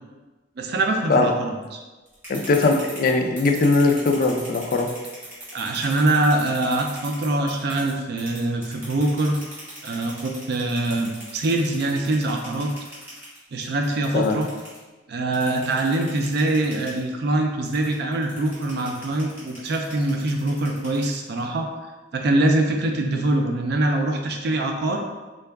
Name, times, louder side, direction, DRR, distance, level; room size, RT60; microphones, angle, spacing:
voice 1, 0.6-1.8 5.5-9.4 9.8-12.7 13.5-14.5 15.1-21.7 22.1-25.0, right 2 dB, 60° right, 3 dB, 0.4 m, -23 dB
sound 1, 2.1-7.9 8.2-14.8 15.3-17.0 17.6-21.4, right 1 dB, 10° right, 1.3 m, -40 dB
voice 2, 2.3-4.9 14.1-14.4, left 3 dB, 50° left, 3 dB, 0.4 m, -20 dB
3.7 x 2.3 x 3.4 m, 1.2 s
head